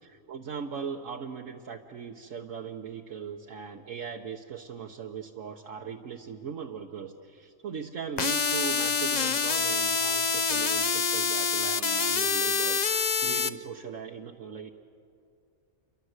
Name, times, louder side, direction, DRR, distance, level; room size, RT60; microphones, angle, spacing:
voice 1, 0.3-14.7, right 6 dB, 65° right, 1 dB, 1.5 m, -39 dB
sound 1, 8.2-13.5, left 5 dB, 40° left, 0.7 m, -26 dB
29.0 x 24.5 x 8.1 m, 2.5 s
omnidirectional pair, 1.5 m